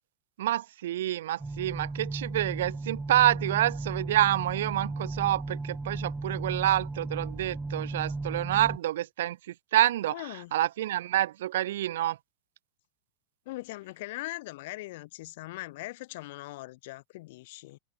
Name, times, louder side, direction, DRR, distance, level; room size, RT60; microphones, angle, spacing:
voice 1, 0.4-12.2, right 13 dB, 55° right, 1.8 m, -28 dB
sound 1, 1.4-8.8, right 3 dB, 10° right, 2.1 m, -35 dB
voice 2, 10.1-10.5 13.5-17.8, left 19 dB, 50° left, 2.7 m, -40 dB
figure-of-eight pair, 90°, 0 cm